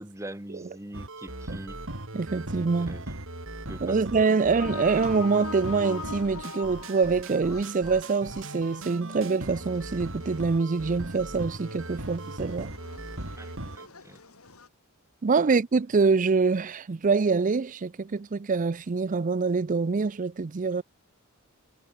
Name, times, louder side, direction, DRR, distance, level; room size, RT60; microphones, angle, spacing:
voice 1, 0.0-1.8 2.8-3.1 3.7-4.5 13.4-14.2 15.5-15.6, right 1 dB, 15° right, 1.7 m, -43 dB
sound 1, 0.9-13.9, right 1 dB, 65° right, 5.3 m, -39 dB
voice 2, 2.1-3.0 3.8-12.7 15.2-20.8, right 4 dB, 40° right, 0.5 m, -25 dB
sound 2, 4.6-14.7, left 4 dB, 85° left, 3.3 m, -43 dB
head